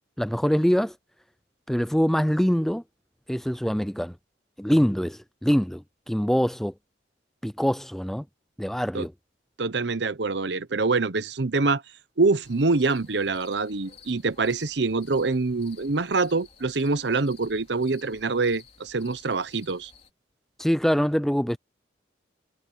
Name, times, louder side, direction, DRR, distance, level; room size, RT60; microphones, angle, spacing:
voice 1, 0.2-0.9 1.7-2.8 3.3-4.1 4.6-6.7 7.4-8.2 8.6-9.1 20.6-21.6, equal, ahead, 0.4 m, -24 dB
voice 2, 9.6-11.8 12.2-19.9, right 3 dB, 65° right, 0.9 m, -25 dB
sound 1, 12.4-20.1, left 5 dB, 35° left, 4.4 m, -53 dB
head